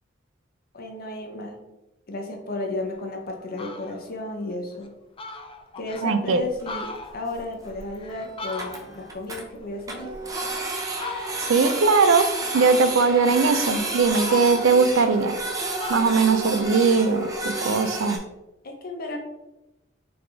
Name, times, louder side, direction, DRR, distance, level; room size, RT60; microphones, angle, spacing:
voice 1, 0.7-1.6 2.1-4.9 5.8-10.1 18.6-19.2, left 2 dB, 50° left, 3 dB, 0.8 m, -33 dB
Fowl, 2.9-3.0 3.4-4.0 4.5-4.6 4.9-5.0 5.2-6.1 6.5-9.1 9.5-10.5 10.9-11.6 12.5-13.2 13.7-15.5 15.8-17.4, left 3 dB, 30° left, 0.3 m, -38 dB
voice 2, 6.0-6.4 11.4-12.3 12.5-15.4 15.9-18.2, right 4 dB, 80° right, 9 dB, 0.4 m, -20 dB
Printer, 6.6-6.7 6.9-7.0 7.3-7.4 7.7-7.8 8.1-8.2 8.4-9.4 9.9-18.2, right 2 dB, 20° right, 0.6 m, -30 dB
3.8 x 3.5 x 3.4 m, 0.99 s
head